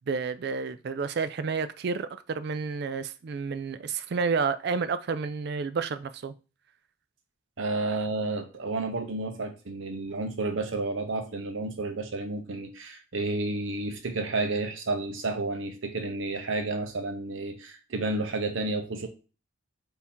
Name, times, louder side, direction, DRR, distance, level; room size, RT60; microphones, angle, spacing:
voice 1, 0.1-6.3, right 5 dB, 50° right, 0.3 m, -30 dB
voice 2, 7.6-19.1, right 2 dB, 70° right, 0.8 m, -31 dB
3.6 x 2.8 x 4.3 m
head